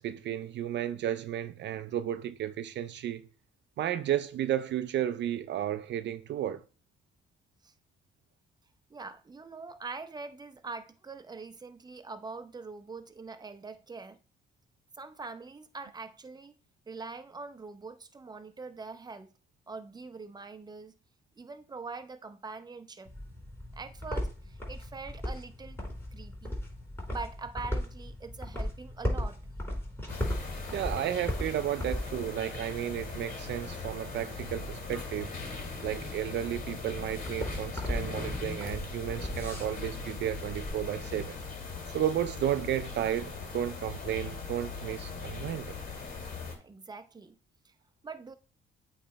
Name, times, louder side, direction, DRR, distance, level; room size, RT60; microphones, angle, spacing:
voice 1, 0.0-3.2 3.8-6.6 30.7-35.3 35.8-41.3 41.9-45.8, right 11 dB, 65° right, 0.4 m, -33 dB
voice 2, 8.9-14.2 15.0-16.6 16.9-19.3 19.7-20.9 21.4-23.1 23.7-25.8 26.1-26.6 27.1-29.4 46.6-47.3 47.6-47.7 48.0-48.3, right 4 dB, 20° right, 0.7 m, -43 dB
sound 1, 23.0-40.7, left 1 dB, 10° left, 3.7 m, -38 dB
sound 2, 30.1-46.6, left 4 dB, 45° left, 2.4 m, -40 dB
8.4 x 3.2 x 4.4 m
cardioid pair, 90°, 20 cm